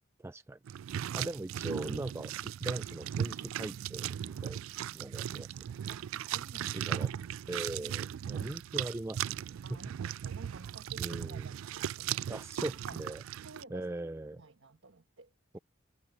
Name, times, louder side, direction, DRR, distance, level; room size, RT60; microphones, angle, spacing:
voice 1, 0.2-0.6 1.1-4.6 4.9-5.5 6.7-7.1 7.5-9.4 9.7-9.8 11.0-11.5 12.3-13.2 13.7-14.4 15.5-15.6, right 2 dB, 15° right, 0.3 m, -40 dB
sound 1, 0.7-13.6, right 10 dB, 90° right, 0.3 m, -37 dB
voice 2, 1.0-1.8 5.9-6.9 8.1-8.5 9.6-12.5 12.9-13.0 13.4-13.9 14.3-15.6, right 3 dB, 70° right, 1.4 m, -53 dB
head